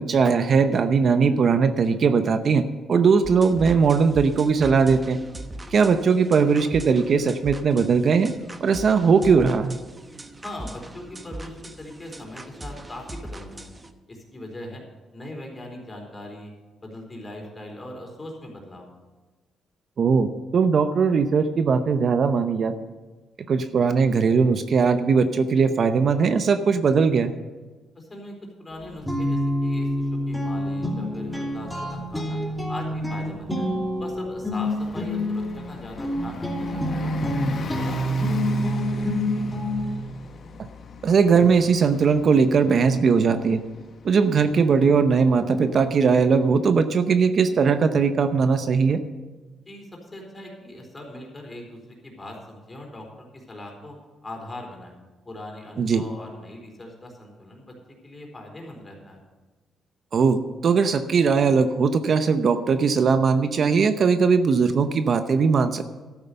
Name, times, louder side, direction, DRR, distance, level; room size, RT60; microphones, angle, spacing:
voice 1, 0.0-5.2 5.7-8.3 8.6-9.8 20.0-22.9 23.5-27.3 41.0-43.6 44.0-49.0 55.8-56.0 60.1-65.8, right 5 dB, 50° right, 10 dB, 0.7 m, -20 dB
sound 1, 3.2-13.9, right 1 dB, 20° right, 1.0 m, -40 dB
voice 2, 10.4-13.7 14.1-14.8 15.1-16.5 16.8-18.9 27.9-32.4 32.7-33.7 34.0-39.3 49.6-53.1 53.3-54.0 54.2-54.9 55.2-57.7 58.0-59.2, left 1 dB, 25° left, 1 dB, 4.3 m, -40 dB
Guitar, 28.7-40.0, equal, 5° left, 2.7 m, -27 dB
Bus, 34.5-46.8, left 5 dB, 55° left, 1.2 m, -41 dB
12.5 x 9.0 x 6.9 m, 1.3 s
cardioid pair, 90°, 0 cm